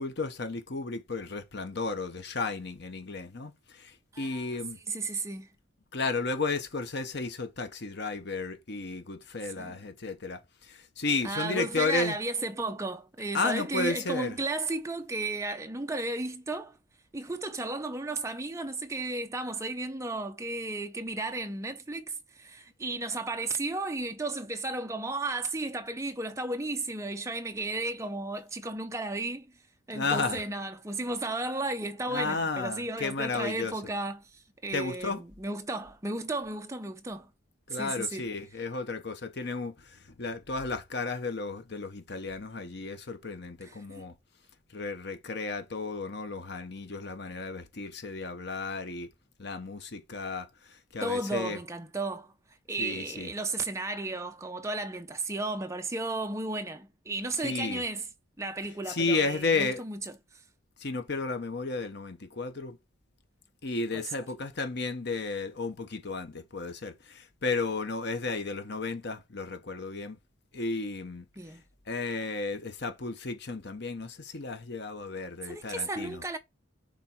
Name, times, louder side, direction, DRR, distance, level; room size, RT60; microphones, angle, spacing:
voice 1, 0.0-4.8 5.9-12.1 13.3-14.4 29.9-30.4 32.1-33.7 34.7-35.2 37.7-44.1 44.7-49.1 49.4-51.6 52.8-53.3 57.4-57.8 58.9-59.8 60.8-62.8 63.6-70.2 70.5-71.2 71.9-76.2, left 3 dB, 50° left, 0.9 m, -33 dB
voice 2, 4.1-4.6 4.9-5.5 9.6-9.8 11.2-16.8 17.1-29.5 29.9-37.3 37.7-38.3 43.6-44.0 51.0-52.3 52.7-58.1 58.4-60.2 63.9-64.0 71.4-71.7 75.4-76.4, right 2 dB, 15° right, 0.6 m, -34 dB
7.1 x 3.7 x 4.4 m
head